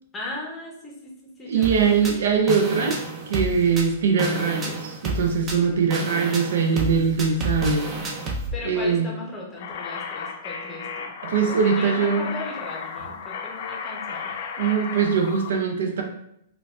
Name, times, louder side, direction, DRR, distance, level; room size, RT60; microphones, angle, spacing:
voice 1, 0.1-0.9 1.4-2.2 8.5-11.1 11.4-14.4, left 2 dB, 15° left, -2 dB, 0.7 m, -37 dB
voice 2, 1.4-3.0 3.3-7.8 8.6-9.1 11.2-12.3 14.6-16.0, right 6 dB, 75° right, 3 dB, 0.5 m, -22 dB
sound 1, 1.6-8.5, right 2 dB, 20° right, 0.5 m, -30 dB
sound 2, 9.6-15.5, left 6 dB, 60° left, 0.4 m, -34 dB
3.9 x 2.3 x 2.3 m, 0.75 s
hypercardioid pair, 145°, 0 cm